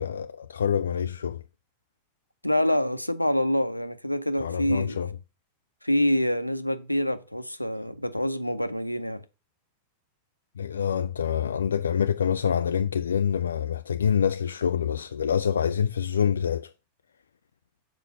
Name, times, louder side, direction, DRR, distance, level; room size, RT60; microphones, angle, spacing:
voice 1, 0.0-1.4 4.4-5.1 10.6-16.7, left 8 dB, 70° left, 0.4 m, -26 dB
voice 2, 2.4-5.0 5.8-9.2, left 1 dB, 90° left, 0.7 m, -26 dB
7.4 x 4.8 x 6.5 m
figure-of-eight pair, 90°, 0 cm